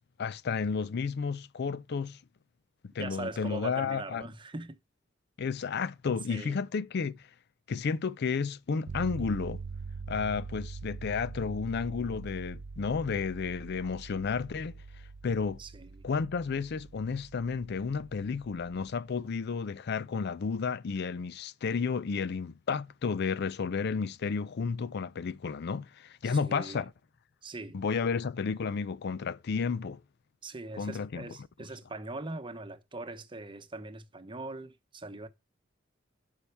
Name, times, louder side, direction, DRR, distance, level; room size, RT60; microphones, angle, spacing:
voice 1, 0.2-2.2 2.9-4.2 5.4-7.3 7.7-9.6 10.1-14.7 15.2-15.6 16.0-26.9 27.7-30.0 30.8-31.2, left 5 dB, 55° left, 0.4 m, -32 dB
voice 2, 3.0-4.8 6.3-6.6 15.6-16.1 26.2-26.9 27.4-27.8 30.4-35.3, right 2 dB, 25° right, 0.9 m, -41 dB
sound 1, 8.9-19.0, right 4 dB, 85° right, 0.5 m, -43 dB
11.5 x 5.6 x 3.3 m
head